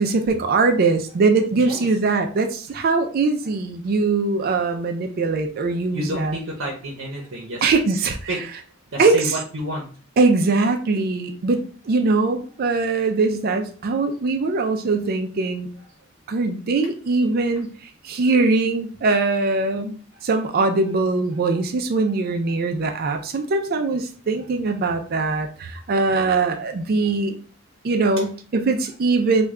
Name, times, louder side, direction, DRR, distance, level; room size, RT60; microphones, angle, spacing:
voice 1, 0.0-6.4 7.6-8.3 9.0-9.4 10.2-15.7 16.3-27.4 27.8-29.5, right 3 dB, 50° right, 5 dB, 0.4 m, -21 dB
voice 2, 1.5-1.9 5.9-7.7 8.3-8.4 8.9-9.9 26.1-26.3 28.2-28.3, equal, 85° right, -1 dB, 0.7 m, -30 dB
3.2 x 2.2 x 3.5 m, 0.41 s
head